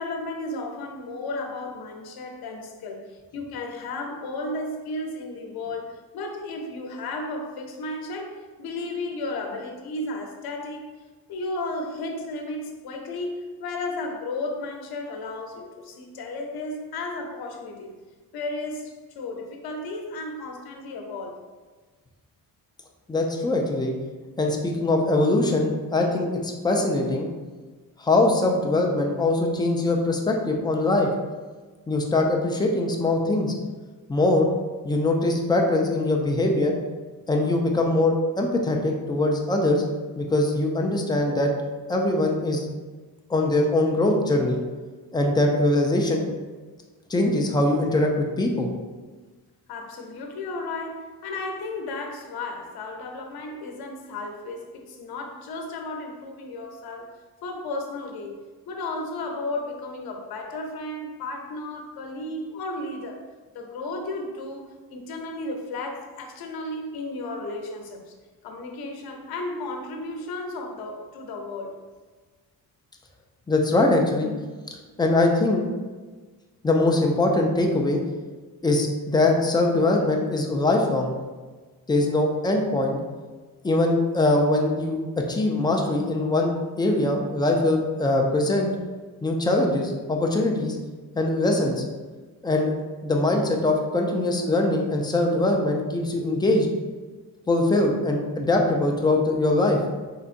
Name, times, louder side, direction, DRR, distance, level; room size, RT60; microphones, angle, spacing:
voice 1, 0.0-10.9 11.3-18.0 18.3-21.5 49.7-63.2 63.5-68.1 68.4-71.8, left 2 dB, 75° left, 3 dB, 0.8 m, -34 dB
voice 2, 23.1-23.9 24.4-27.3 28.0-31.1 31.9-33.5 34.1-34.5 34.8-36.7 37.3-39.8 40.2-41.5 41.9-42.7 43.3-44.6 45.1-46.3 47.1-48.7 73.5-74.3 75.0-75.6 76.6-78.0 78.6-81.1 81.9-83.0 83.6-85.0 85.3-88.7 89.2-90.8 91.2-91.8 92.4-92.7 93.0-96.7 97.5-99.8, left 2 dB, 10° left, 1 dB, 0.3 m, -22 dB
4.5 x 3.9 x 2.5 m, 1.3 s
cardioid pair, 175°, 37 cm